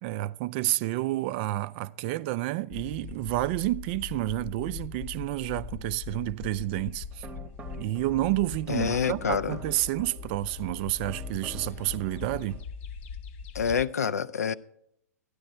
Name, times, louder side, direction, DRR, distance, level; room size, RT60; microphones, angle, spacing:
voice 1, 0.0-7.3 7.8-12.6, right 17 dB, 40° right, 0.3 m, -30 dB
sound 1, 2.7-13.9, left 7 dB, 50° left, 0.8 m, -41 dB
sound 2, 6.8-12.6, right 4 dB, 20° right, 0.8 m, -48 dB
voice 2, 8.7-9.6 13.5-14.5, left 7 dB, 75° left, 0.4 m, -27 dB
12.5 x 9.6 x 4.3 m
figure-of-eight pair, 105°, 8 cm